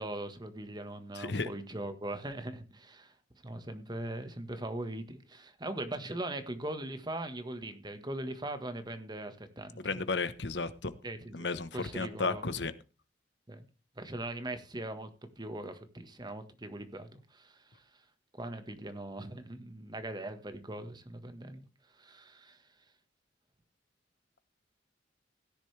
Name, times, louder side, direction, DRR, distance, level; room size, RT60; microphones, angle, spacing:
voice 1, 0.0-3.1 3.4-9.8 11.0-11.5 11.7-12.4 13.5-13.6 14.0-15.1 15.4-17.8 18.4-21.7 21.9-22.6, right 1 dB, 25° right, 9 dB, 1.5 m, -40 dB
voice 2, 1.2-1.5 9.8-10.9 11.3-12.7, left 4 dB, 70° left, 13 dB, 1.1 m, -33 dB
16.5 x 10.5 x 3.4 m, 0.32 s
head